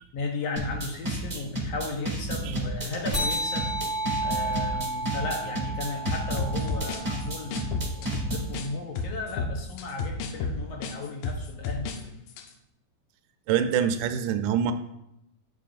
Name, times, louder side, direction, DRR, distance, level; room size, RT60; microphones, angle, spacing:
voice 1, 0.1-3.7 4.2-12.1, left 3 dB, 65° left, 1 dB, 1.7 m, -35 dB
sound 1, 0.6-8.5, right 1 dB, 30° right, 0.7 m, -31 dB
sound 2, 3.1-8.0, right 1 dB, 5° left, 2.6 m, -32 dB
sound 3, 6.1-8.7 9.0-12.0 12.3-12.5, left 4 dB, 90° left, 2.4 m, -32 dB
voice 2, 13.5-14.7, right 8 dB, 80° right, 8 dB, 2.1 m, -25 dB
9.4 x 7.9 x 2.5 m, 0.80 s
omnidirectional pair, 3.8 m